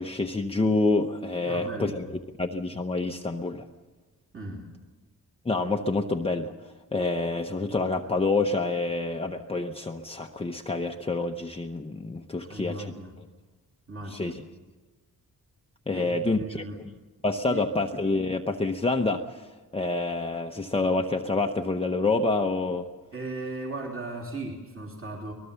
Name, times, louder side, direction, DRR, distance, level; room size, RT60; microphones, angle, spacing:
voice 1, 0.0-2.1 2.4-3.7 5.4-6.5 6.9-12.9 14.1-14.4 15.9-16.6 17.2-19.5 19.7-22.9, left 3 dB, 15° left, 3 dB, 0.7 m, -27 dB
voice 2, 1.4-1.9 4.3-4.7 12.4-13.2 13.9-14.4 15.9-16.8 17.5-17.6 23.1-25.3, right 2 dB, 35° right, -1 dB, 3.1 m, -37 dB
24.5 x 19.5 x 6.9 m, 1.3 s
wide cardioid pair, 155°, 37 cm